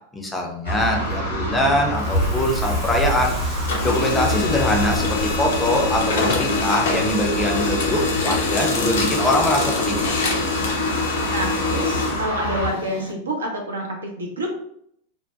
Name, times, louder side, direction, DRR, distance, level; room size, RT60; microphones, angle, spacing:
voice 1, 0.1-3.4 3.8-10.1, left 1 dB, 10° left, 0 dB, 0.5 m, -23 dB
Passing cars, 0.6-12.7, left 1 dB, 85° left, 0.8 m, -28 dB
Crackle, 1.8-10.8, equal, 30° right, 0.8 m, -34 dB
Printer, 2.0-3.3 3.6-13.1, left 3 dB, 60° left, 0.5 m, -24 dB
voice 2, 11.3-14.6, right 1 dB, 70° right, 0 dB, 0.6 m, -27 dB
2.6 x 2.1 x 2.2 m, 0.70 s
figure-of-eight pair, 90°, 0 cm